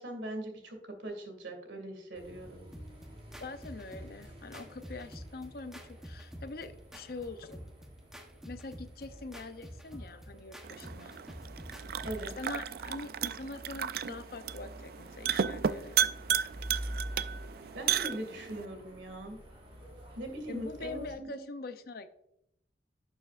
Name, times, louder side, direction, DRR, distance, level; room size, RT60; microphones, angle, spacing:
voice 1, 0.0-2.6 12.0-12.3 17.7-19.4 20.2-21.4, right 1 dB, 90° right, 5 dB, 2.2 m, -40 dB
sound 1, 2.1-21.1, equal, 30° right, 3.1 m, -48 dB
sound 2, 2.7-12.3, equal, 5° right, 0.9 m, -49 dB
voice 2, 3.4-7.6 8.5-11.2 12.4-16.0 20.5-22.1, left 3 dB, 55° left, 11 dB, 0.6 m, -44 dB
sound 3, 10.6-18.6, right 8 dB, 55° right, 0.3 m, -34 dB
11.0 x 7.0 x 2.4 m, 0.78 s
head